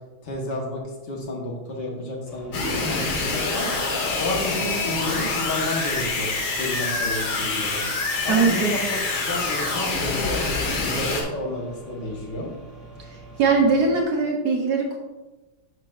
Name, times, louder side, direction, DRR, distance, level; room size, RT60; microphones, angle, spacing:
voice 1, 0.2-0.8 1.1-2.5 2.9-3.7 4.2-6.3 6.6-7.8 8.2-9.0 9.3-12.5, left 1 dB, 60° left, -1 dB, 2.0 m, -30 dB
sound 1, 2.2-14.0, right 2 dB, 25° left, 2.8 m, -44 dB
sound 2, 2.5-11.2, left 3 dB, 75° left, 2.2 m, -26 dB
voice 2, 8.3-8.8 13.4-15.0, right 4 dB, 60° right, 0 dB, 1.2 m, -21 dB
10.5 x 6.1 x 2.5 m, 1.1 s
omnidirectional pair, 2.3 m